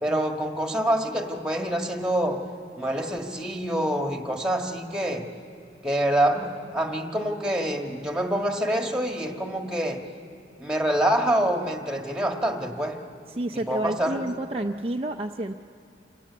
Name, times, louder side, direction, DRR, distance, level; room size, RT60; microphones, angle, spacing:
voice 1, 0.0-2.4 2.8-5.3 5.8-10.0 10.6-13.0 13.5-14.2, right 1 dB, 5° right, 3 dB, 1.6 m, -26 dB
voice 2, 13.3-15.5, right 1 dB, 30° right, 3 dB, 0.5 m, -30 dB
28.0 x 17.0 x 8.5 m, 2.6 s
head